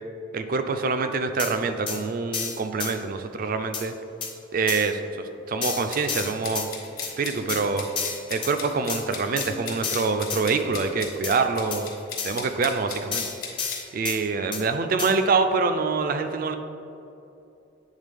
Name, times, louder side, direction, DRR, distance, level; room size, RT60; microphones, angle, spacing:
voice 1, 0.3-3.9 4.5-6.7 7.2-7.9 8.3-11.9 12.2-13.3 13.9-16.6, right 4 dB, 45° right, 8 dB, 0.3 m, -25 dB
sound 1, 1.4-1.5 1.9-2.0 2.3-2.9 3.7-3.8 4.2-4.3 4.7-4.9 5.6-6.7 7.0-7.1 7.5-7.6 8.0-8.5 8.9-9.0 9.4-9.5 9.8-10.4 11.2-11.3 11.7-11.8 12.2-12.4 13.1-14.2 14.5-14.6 15.0-15.1, left 6 dB, 25° left, 0.6 m, -30 dB
sound 2, 5.9-13.8, left 5 dB, 50° left, 1.0 m, -37 dB
8.2 x 3.5 x 3.5 m, 2.8 s
head